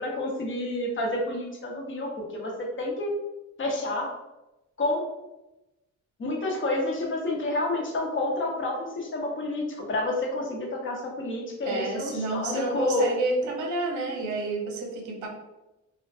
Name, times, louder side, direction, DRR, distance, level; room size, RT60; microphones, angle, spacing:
voice 1, 0.0-2.5 2.8-3.1 3.6-4.1 4.8-5.1 6.2-13.1, left 2 dB, 40° left, -1 dB, 0.8 m, -29 dB
voice 2, 11.6-15.3, right 2 dB, 75° right, 1 dB, 0.8 m, -29 dB
2.3 x 2.2 x 3.6 m, 0.99 s
cardioid pair, 90°, 30 cm